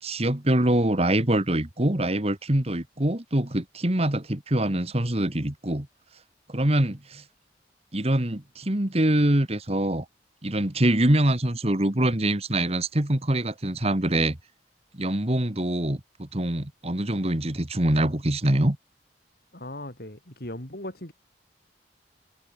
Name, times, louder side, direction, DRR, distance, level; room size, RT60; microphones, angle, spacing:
voice 1, 0.0-5.9 6.5-7.2 7.9-10.1 10.4-14.4 15.0-18.8, right 1 dB, 35° right, 2.0 m, -24 dB
voice 2, 19.5-21.1, left 1 dB, 55° left, 5.2 m, -38 dB
head